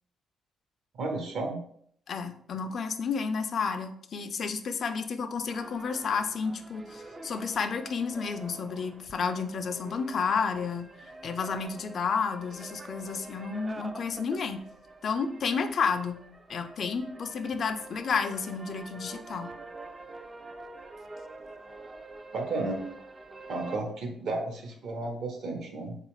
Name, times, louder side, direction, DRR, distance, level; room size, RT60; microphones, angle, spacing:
voice 1, 1.0-1.6 22.3-22.8 23.5-26.0, right 2 dB, 65° right, 2 dB, 0.8 m, -33 dB
voice 2, 2.1-10.9 11.2-14.6 15.0-16.2 16.5-19.5, left 5 dB, 55° left, 8 dB, 0.3 m, -31 dB
sound 1, 5.5-23.8, right 2 dB, 25° right, 0.3 m, -46 dB
3.7 x 2.4 x 3.0 m, 0.65 s
cardioid pair, 90°, 0 cm